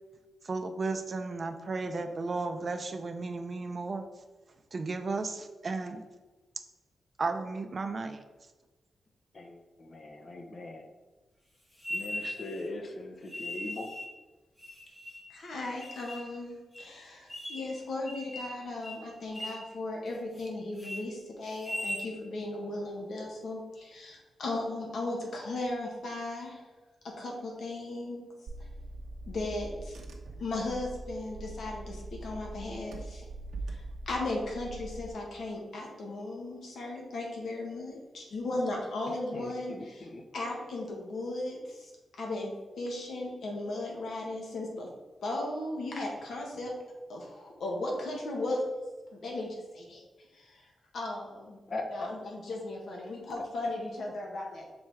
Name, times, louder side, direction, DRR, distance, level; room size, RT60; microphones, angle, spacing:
voice 1, 0.4-4.0 4.7-6.0 7.2-8.2, right 3 dB, 40° right, 7 dB, 0.7 m, -34 dB
voice 2, 9.3-10.8 11.9-13.9 39.1-40.2 51.7-52.2, left 2 dB, 45° left, 4 dB, 0.9 m, -40 dB
sound 1, 11.8-12.6 13.3-14.1 14.6-15.3 15.8-16.3 16.7-16.8 17.3-17.8 18.1-18.6 18.8-19.0 19.3-19.7 20.1-20.5 20.8-21.0 21.5-22.1, left 1 dB, 20° left, 1.3 m, -39 dB
voice 3, 15.3-26.6 27.2-28.3 29.3-30.0 30.4-33.2 33.7-40.0 40.3-41.9 42.2-42.5 42.8-44.9 45.2-46.7 47.1-48.6 49.2-50.0 50.3-50.7 50.9-51.6 51.9-54.6, left 2 dB, 70° left, -1 dB, 1.7 m, -36 dB
Car / Engine, 28.5-35.1, right 2 dB, 75° right, 1.0 m, -42 dB
6.4 x 4.3 x 4.7 m, 1.2 s
wide cardioid pair, 125°, 0 cm